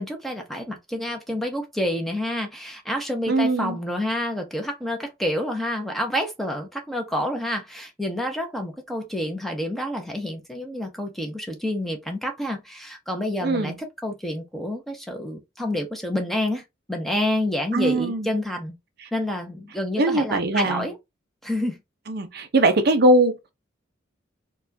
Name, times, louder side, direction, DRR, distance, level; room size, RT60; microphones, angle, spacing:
voice 1, 0.0-13.7 14.0-18.7 19.1-21.0 21.4-21.8, left 1 dB, ahead, 0.7 m, -28 dB
voice 2, 3.3-3.8 13.4-13.8 17.7-18.3 20.0-20.9 22.1-23.5, right 2 dB, 50° right, 0.5 m, -21 dB
4.1 x 2.3 x 2.7 m
head